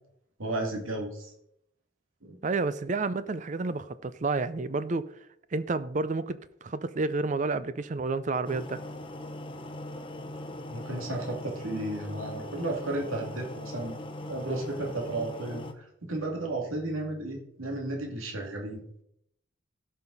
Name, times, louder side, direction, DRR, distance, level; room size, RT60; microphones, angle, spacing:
voice 1, 0.4-1.3 2.2-2.4 10.7-14.0 14.3-18.8, right 2 dB, 85° right, 2.4 m, -33 dB
voice 2, 2.4-5.1 5.5-8.8, right 3 dB, 35° right, 0.4 m, -30 dB
sound 1, 8.4-15.7, left 1 dB, 25° left, 0.8 m, -40 dB
16.5 x 5.7 x 4.0 m
head